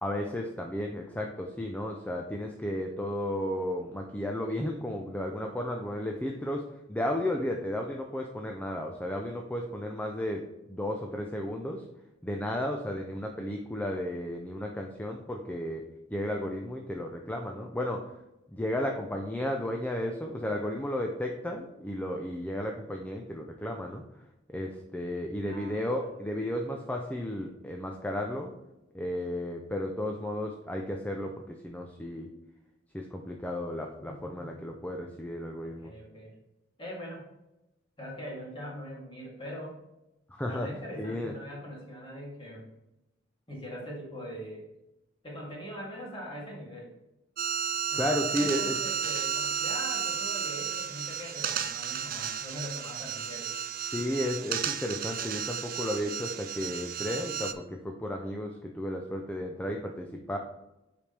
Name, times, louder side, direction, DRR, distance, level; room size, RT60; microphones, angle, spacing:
voice 1, 0.0-6.6 6.9-11.8 12.2-15.8 16.1-18.1 18.5-24.0 24.5-28.5 28.9-32.3 32.9-35.9 40.3-40.7 41.0-41.3 47.9-48.8 53.9-60.4, left 1 dB, 10° left, 2 dB, 0.6 m, -33 dB
voice 2, 25.4-26.1 26.4-26.6 34.0-34.5 35.6-36.3 36.8-37.3 38.0-39.8 40.4-42.7 43.5-44.6 45.2-46.9 47.9-53.5, equal, 25° left, -4 dB, 2.8 m, -42 dB
sound 1, 47.4-57.5, right 8 dB, 50° right, 0.6 m, -33 dB
8.1 x 5.1 x 3.4 m, 0.93 s
head